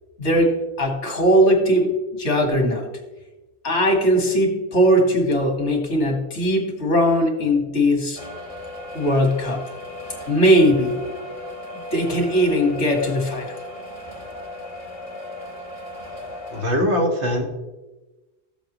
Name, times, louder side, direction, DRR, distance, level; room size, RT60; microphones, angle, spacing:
voice 1, 0.2-2.9 3.6-8.2 8.9-9.6 10.3-11.0 11.7-13.6, equal, 85° left, 2 dB, 1.9 m, -19 dB
sound 1, 8.1-16.6, left 1 dB, 30° left, 2.1 m, -36 dB
voice 2, 16.5-17.5, equal, 80° right, 0 dB, 1.8 m, -21 dB
14.0 x 7.1 x 3.0 m, 1.1 s
omnidirectional pair, 1.1 m